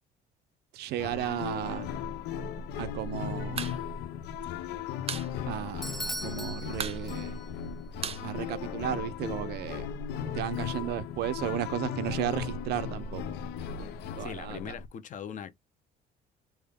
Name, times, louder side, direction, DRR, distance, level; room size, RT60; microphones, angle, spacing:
voice 1, 0.7-1.9 2.8-3.8 5.5-7.4 8.2-9.9 10.3-13.4 13.8-13.9 14.2-14.7, right 13 dB, 75° right, 0.6 m, -34 dB
sound 1, 1.0-14.9, left 7 dB, 80° left, 0.7 m, -36 dB
sound 2, 3.5-3.8 4.0-4.1 4.4-5.3 5.6-5.7 6.0-6.4 6.7-9.1, right 7 dB, 35° right, 0.6 m, -37 dB
Bell / Doorbell, 5.8-7.7, equal, ahead, 0.3 m, -39 dB
voice 2, 14.2-15.5, left 8 dB, 50° left, 0.9 m, -40 dB
3.6 x 2.7 x 3.5 m
cardioid pair, 110°, 17 cm